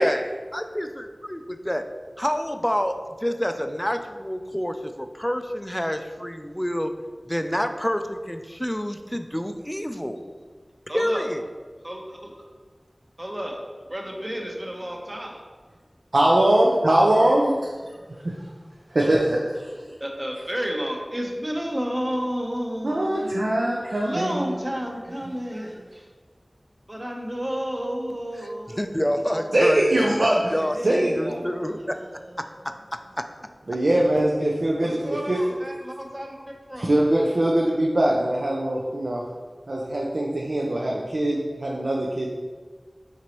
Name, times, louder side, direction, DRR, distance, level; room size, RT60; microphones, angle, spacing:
voice 1, 0.5-1.8 2.2-3.0 3.2-6.9 7.3-10.2 10.9-11.4 28.7-32.0 32.4-32.5 33.2-33.3, equal, 10° left, 7 dB, 0.3 m, -27 dB
voice 2, 10.9-11.3 11.8-12.3 13.2-15.4 20.0-23.4 24.0-25.8 26.9-29.5 30.7-32.8 34.8-36.9, equal, 30° right, 0 dB, 0.7 m, -32 dB
voice 3, 16.1-17.7 18.9-19.8 22.8-24.6 29.5-30.4 30.8-31.4 33.7-35.4 36.8-39.2 39.7-42.3, right 1 dB, 85° right, -3 dB, 0.5 m, -22 dB
4.5 x 3.9 x 2.9 m, 1.4 s
wide cardioid pair, 50°, 0 cm